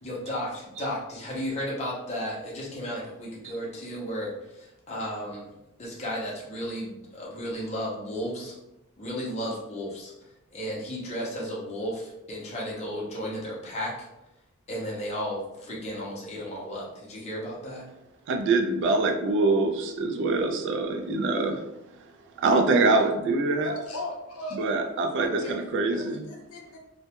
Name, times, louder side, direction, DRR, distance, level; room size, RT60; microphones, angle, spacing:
voice 1, 0.0-5.5 5.8-8.5 9.0-10.1 10.5-14.1 14.7-17.8, equal, 30° left, -5 dB, 0.6 m, -34 dB
voice 2, 18.3-21.6 22.4-23.7 24.5-26.3, right 3 dB, 60° right, 5 dB, 0.3 m, -24 dB
voice 3, 23.6-24.6 25.1-25.5 25.9-26.8, left 2 dB, 80° left, 0 dB, 0.5 m, -37 dB
2.2 x 2.0 x 2.8 m, 0.89 s
head